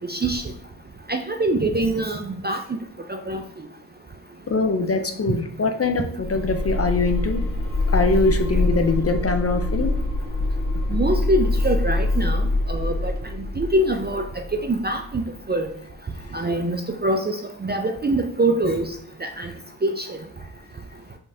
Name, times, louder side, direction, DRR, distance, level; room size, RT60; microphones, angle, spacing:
voice 1, 0.0-0.4 1.1-2.6 3.1-3.4 10.9-13.1 13.4-14.2 14.5-15.2 15.5-15.7 16.3-18.9 19.2-19.5 19.8-20.2, right 1 dB, 25° right, 4 dB, 0.3 m, -24 dB
voice 2, 4.5-7.4 7.9-10.0 16.3-16.4, left 3 dB, 35° left, 6 dB, 0.4 m, -23 dB
sound 1, 6.2-15.1, left 2 dB, 50° left, 1.6 m, -24 dB
5.3 x 3.4 x 2.6 m, 0.66 s
wide cardioid pair, 120°, 43 cm